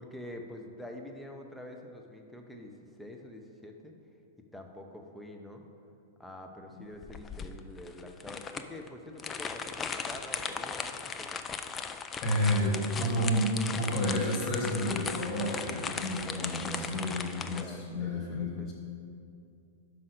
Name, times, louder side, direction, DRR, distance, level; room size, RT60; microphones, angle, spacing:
voice 1, 0.0-3.9 4.5-5.6 6.2-11.4 16.2-18.7, left 1 dB, 5° left, 2 dB, 0.7 m, -46 dB
sound 1, 7.0-17.6, left 5 dB, 20° left, 0.4 m, -37 dB
voice 2, 12.2-18.7, left 1 dB, 45° left, -2 dB, 1.6 m, -30 dB
5.6 x 5.1 x 6.5 m, 2.5 s
figure-of-eight pair, 105°, 0 cm